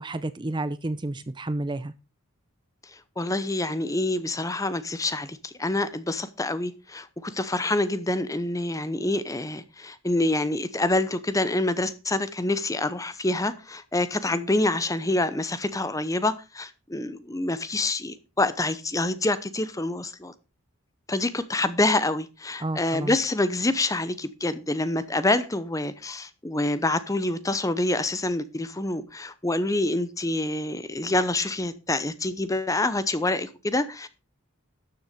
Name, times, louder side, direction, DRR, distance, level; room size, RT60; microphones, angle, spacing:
voice 1, 0.0-1.9 22.6-23.2, right 2 dB, 20° right, 0.6 m, -30 dB
voice 2, 2.9-20.3 21.1-34.1, left 2 dB, 15° left, 0.7 m, -27 dB
13.0 x 7.0 x 5.1 m
head